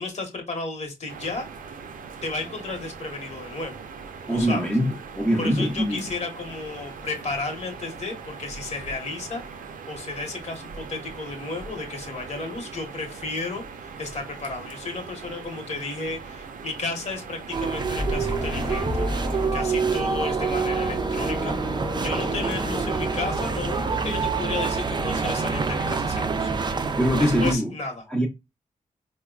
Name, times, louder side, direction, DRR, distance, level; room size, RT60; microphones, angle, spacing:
voice 1, 0.0-1.5 2.2-3.8 4.3-4.7 5.4-9.4 9.9-21.6 22.0-26.5 27.2-27.9, left 3 dB, 55° left, 1.1 m, -33 dB
Quiet Forest Ambience, 1.1-19.5, right 5 dB, 85° right, 0.5 m, -41 dB
voice 2, 4.3-6.1 27.0-27.7 28.1-28.3, equal, 5° left, 0.6 m, -23 dB
sound 1, 17.5-27.5, right 4 dB, 35° right, 0.4 m, -27 dB
sound 2, 18.0-24.2, left 1 dB, 35° left, 0.8 m, -33 dB
4.5 x 2.2 x 2.3 m
wide cardioid pair, 115°, 14 cm